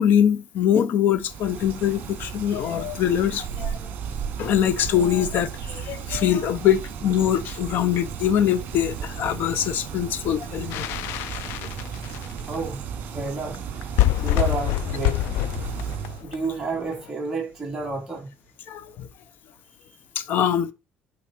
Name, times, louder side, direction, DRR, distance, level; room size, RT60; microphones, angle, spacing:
voice 1, 0.0-3.8 4.4-10.9 18.7-19.1 20.2-20.7, left 9 dB, 55° left, 0.8 m, -23 dB
sound 1, 1.1-16.2, right 7 dB, 50° right, 2.4 m, -35 dB
sound 2, 10.7-12.5 13.3-13.4 13.5-13.6 13.8-16.9, left 15 dB, 80° left, 0.4 m, -25 dB
voice 2, 12.5-13.6 14.2-15.4 16.2-18.3, right 4 dB, 10° right, 3.7 m, -30 dB
10.5 x 5.0 x 4.5 m
cardioid pair, 160°, 4 cm